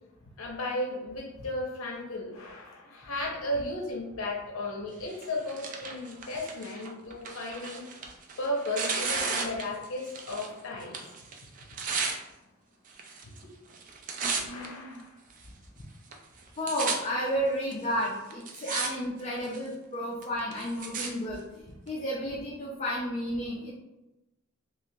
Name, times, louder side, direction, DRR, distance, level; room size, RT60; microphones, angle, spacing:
voice 1, 0.4-7.8 8.4-11.0 14.5-15.1, left 1 dB, 85° left, -1 dB, 0.6 m, -35 dB
Tearing, 5.1-10.5 10.8-12.2 12.9-13.4 13.7-14.7 15.3-15.4 16.1-16.2 16.4-17.0 17.7-17.8 18.3-18.9 19.2-19.7 20.2-21.1 21.9-22.0, right 5 dB, 40° right, 0.4 m, -34 dB
voice 2, 14.2-15.0 16.6-21.4 21.9-23.7, equal, 30° left, -5 dB, 0.4 m, -32 dB
3.1 x 2.4 x 2.7 m, 1.0 s
head